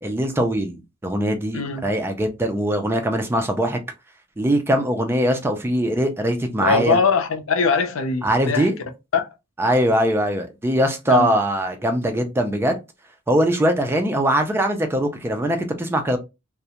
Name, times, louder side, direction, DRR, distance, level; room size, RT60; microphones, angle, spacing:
voice 1, 0.0-3.8 4.4-7.0 8.2-8.8 9.6-12.8 13.3-16.2, right 1 dB, 10° right, 0.4 m, -21 dB
voice 2, 1.5-1.9 6.6-8.7 9.1-9.3 11.1-11.3, left 5 dB, 85° left, 0.5 m, -21 dB
2.4 x 2.1 x 2.8 m
head